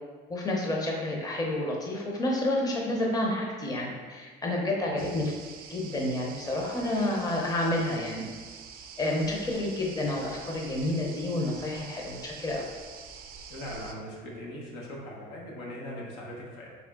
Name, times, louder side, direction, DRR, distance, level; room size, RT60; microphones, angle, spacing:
voice 1, 0.3-5.3 5.7-8.3 9.0-12.6, left 1 dB, 20° left, -1 dB, 0.7 m, -29 dB
sound 1, 5.0-13.9, right 6 dB, 55° right, 0.5 m, -46 dB
voice 2, 13.5-16.7, equal, 85° left, -3 dB, 1.1 m, -40 dB
3.6 x 3.2 x 3.6 m, 1.5 s
cardioid pair, 110°, 18 cm